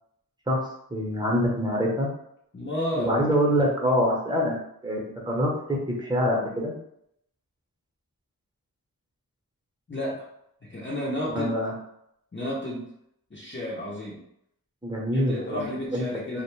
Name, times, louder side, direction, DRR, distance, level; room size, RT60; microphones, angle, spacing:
voice 1, 0.9-2.1 2.9-4.6 4.8-6.7 11.3-11.7 14.8-15.6 15.9-16.0 16.3-16.4, equal, 10° right, -2 dB, 0.8 m, -25 dB
voice 2, 2.5-3.1 9.9-10.3 10.6-11.5 12.3-12.9 13.3-14.3 15.1-16.4, left 1 dB, 30° left, -6 dB, 0.6 m, -32 dB
2.4 x 2.1 x 3.1 m, 0.74 s
wide cardioid pair, 65°, 37 cm